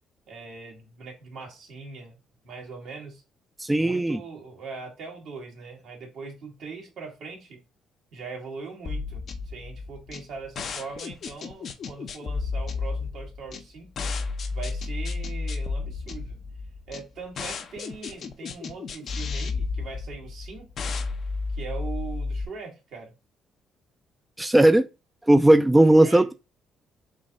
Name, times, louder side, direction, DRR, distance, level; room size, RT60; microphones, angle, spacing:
voice 1, 0.3-2.1 2.4-3.2 3.8-7.6 8.1-13.9 14.5-16.4 16.9-20.9 21.5-23.1 25.9-26.2, right 4 dB, 70° right, 1.6 m, -41 dB
voice 2, 3.6-4.2 24.4-24.9 25.3-26.3, right 1 dB, 10° right, 0.4 m, -17 dB
sound 1, 8.8-22.4, left 4 dB, 60° left, 0.5 m, -32 dB
3.7 x 2.6 x 3.9 m
supercardioid pair, 60°, 0 cm